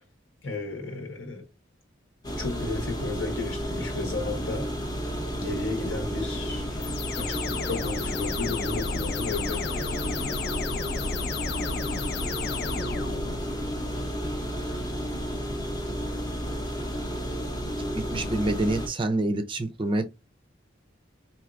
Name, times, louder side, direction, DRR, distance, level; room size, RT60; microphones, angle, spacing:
voice 1, 0.4-1.4 2.4-4.7 5.3-6.9 7.2-9.9, left 3 dB, 80° left, 1.3 m, -33 dB
sound 1, 2.2-18.9, equal, 20° left, 0.7 m, -32 dB
sound 2, 6.8-13.6, left 5 dB, 50° left, 0.4 m, -33 dB
voice 2, 17.9-20.1, right 2 dB, 25° right, 0.4 m, -27 dB
4.5 x 2.8 x 2.4 m
head